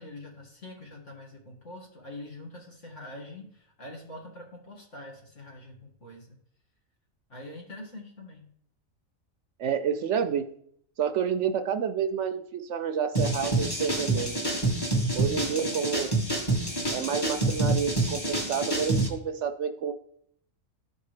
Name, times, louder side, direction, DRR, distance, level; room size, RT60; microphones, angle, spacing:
voice 1, 0.0-6.3 7.3-8.5 15.3-16.3, left 1 dB, 60° left, -1 dB, 2.3 m, -45 dB
voice 2, 9.6-10.5 11.0-14.5 15.1-16.1 16.9-19.9, right 7 dB, 70° right, 8 dB, 0.8 m, -29 dB
sound 1, 13.1-19.1, right 2 dB, 20° left, 1.4 m, -27 dB
13.0 x 5.3 x 3.3 m, 0.68 s
omnidirectional pair, 1.4 m